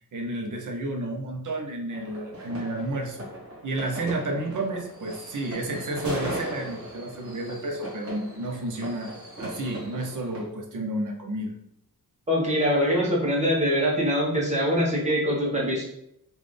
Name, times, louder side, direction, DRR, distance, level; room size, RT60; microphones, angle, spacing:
voice 1, 0.1-3.3 3.6-9.1 9.4-11.5, right 1 dB, 55° right, 2 dB, 0.7 m, -31 dB
sound 1, 1.9-10.5, right 1 dB, 35° right, 1.3 m, -38 dB
voice 2, 12.3-15.8, equal, 20° right, -4 dB, 1.0 m, -23 dB
3.9 x 2.5 x 3.3 m, 0.77 s
wide cardioid pair, 170°, 38 cm